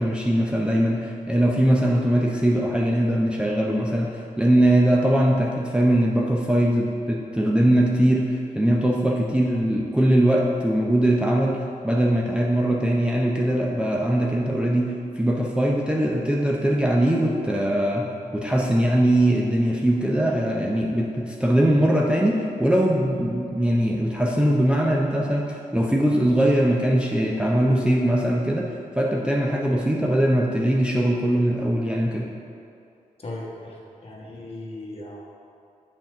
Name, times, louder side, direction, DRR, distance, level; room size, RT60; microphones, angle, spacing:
voice 1, 0.0-32.3, right 1 dB, 5° right, -2 dB, 0.6 m, -21 dB
voice 2, 33.2-35.2, left 1 dB, 40° left, -3 dB, 1.4 m, -37 dB
6.0 x 4.4 x 6.4 m, 2.5 s
wide cardioid pair, 95°, 15 cm